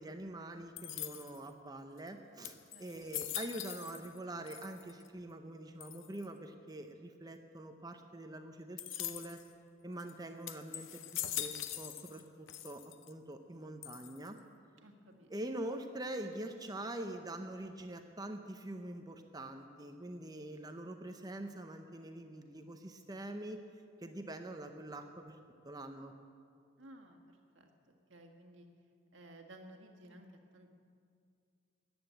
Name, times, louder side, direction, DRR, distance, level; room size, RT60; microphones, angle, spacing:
voice 1, 0.0-9.4 9.8-14.4 15.3-23.6 24.0-25.4 25.6-26.1, right 1 dB, 20° right, 6 dB, 0.7 m, -44 dB
sound 1, 0.8-1.5 2.1-2.2 2.4-4.2 4.5-5.1 5.8-6.3 8.8-9.5 10.0-10.1 10.5-12.2 12.5-13.1 13.8-14.4, left 12 dB, 75° left, 0.7 m, -42 dB
voice 2, 14.8-15.3 26.8-27.2 27.6-27.7 28.1-28.7 29.1-30.3 30.5-30.7, right 1 dB, 70° right, 3 dB, 1.8 m, -55 dB
14.0 x 9.9 x 9.0 m, 2.3 s
head